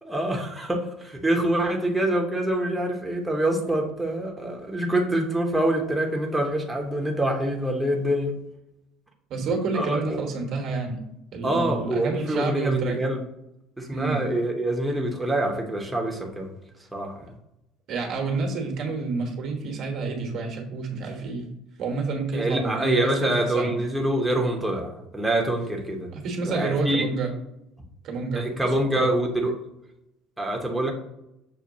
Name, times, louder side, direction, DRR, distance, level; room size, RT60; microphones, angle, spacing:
voice 1, 0.0-8.3 9.4-10.2 11.4-13.2 13.8-16.5 16.9-17.3 22.3-26.1 26.4-27.0 28.3-29.6 30.4-30.9, right 1 dB, 10° right, 0 dB, 0.8 m, -25 dB
voice 2, 9.3-11.0 11.3-13.0 13.9-14.2 17.9-21.5 21.8-23.7 26.1-27.3 28.0-28.4 28.9-29.1, right 4 dB, 55° right, 2 dB, 1.2 m, -28 dB
6.6 x 2.2 x 2.8 m, 0.85 s
hypercardioid pair, 70°, 0 cm